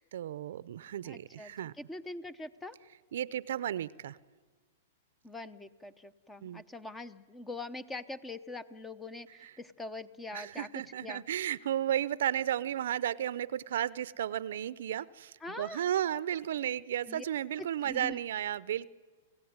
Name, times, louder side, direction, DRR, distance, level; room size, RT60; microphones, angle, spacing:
voice 1, 0.0-1.7 3.1-4.2 6.4-6.6 9.4-9.5 10.3-18.9, right 11 dB, 70° right, 18 dB, 0.7 m, -34 dB
voice 2, 1.0-2.7 5.2-10.7 11.0-11.2 15.4-15.8 17.1-17.2 17.6-18.2, left 2 dB, 10° left, 16 dB, 0.9 m, -43 dB
29.0 x 16.5 x 9.6 m, 1.4 s
hypercardioid pair, 130°, 0 cm